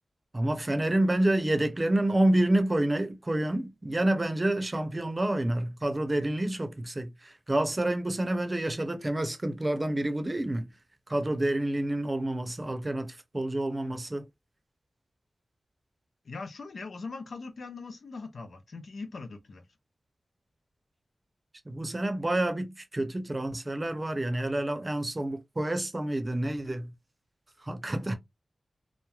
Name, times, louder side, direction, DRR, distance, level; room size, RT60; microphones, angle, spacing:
voice 1, 0.3-10.7 11.1-14.3 21.7-26.9 27.6-28.2, right 1 dB, 30° right, 0.6 m, -28 dB
voice 2, 16.2-19.6, left 4 dB, 80° left, 0.5 m, -41 dB
3.0 x 2.1 x 2.3 m
cardioid pair, 50°, 0 cm